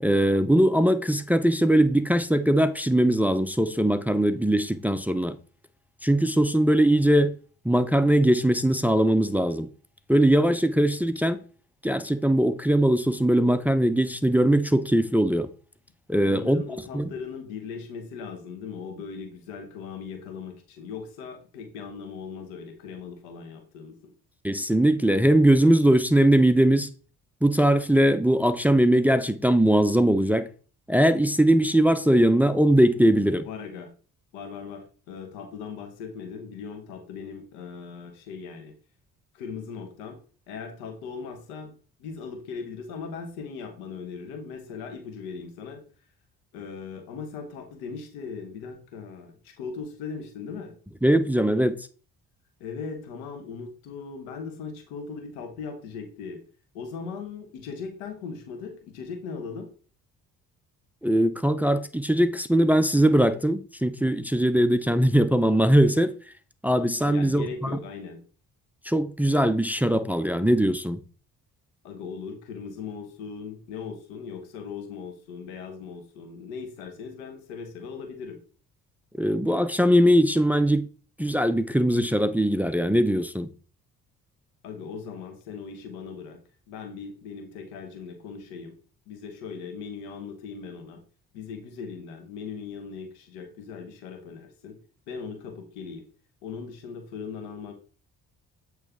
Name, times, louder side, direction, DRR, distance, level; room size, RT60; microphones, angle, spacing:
voice 1, 0.0-5.4 6.0-7.3 7.6-9.7 10.1-11.4 11.8-15.5 16.1-16.6 16.9-17.1 24.4-26.9 27.4-30.5 30.9-33.5 51.0-51.8 61.0-66.1 66.6-67.8 68.9-71.0 79.2-80.9 81.2-83.5, right 1 dB, 5° right, 0.5 m, -21 dB
voice 2, 16.2-24.1 33.4-33.9 34.3-38.7 39.3-40.2 40.5-41.7 42.0-45.8 46.5-50.7 52.6-56.4 56.7-59.7 67.1-68.2 71.8-78.4 84.6-86.4 86.7-88.8 89.1-91.0 91.3-94.8 95.1-96.0 96.4-97.7, left 5 dB, 90° left, 1.3 m, -39 dB
8.2 x 3.2 x 3.6 m
supercardioid pair, 60°, 37 cm